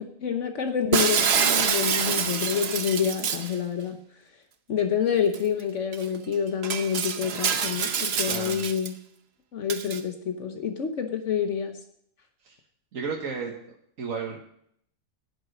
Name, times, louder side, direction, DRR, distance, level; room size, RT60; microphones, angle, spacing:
voice 1, 0.0-4.0 4.7-8.9 9.5-11.8, left 7 dB, 65° left, 6 dB, 1.3 m, -28 dB
Shatter, 0.9-3.5 5.3-5.4 5.9-6.0 6.6-8.9 9.7-10.0, right 6 dB, 55° right, 1.1 m, -26 dB
voice 2, 8.3-8.6 12.4-12.6 12.9-13.5 14.0-14.4, right 5 dB, 80° right, 0 dB, 1.7 m, -32 dB
11.0 x 9.0 x 6.4 m, 0.69 s
omnidirectional pair, 1.4 m